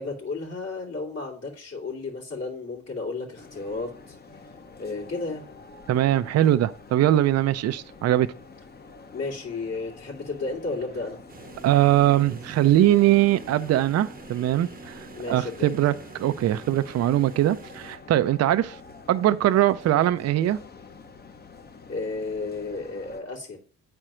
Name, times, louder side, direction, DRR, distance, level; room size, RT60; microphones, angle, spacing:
voice 1, 0.0-4.2 4.8-5.4 9.1-11.2 15.1-15.8 21.9-23.6, left 3 dB, 55° left, 2.7 m, -33 dB
sound 1, 3.3-23.2, left 4 dB, 30° left, 1.0 m, -47 dB
voice 2, 5.9-8.3 11.6-18.8 19.1-20.6, right 13 dB, 55° right, 0.5 m, -21 dB
sound 2, 11.3-18.0, right 4 dB, 30° right, 0.8 m, -45 dB
8.9 x 4.4 x 4.9 m
cardioid pair, 90°, 30 cm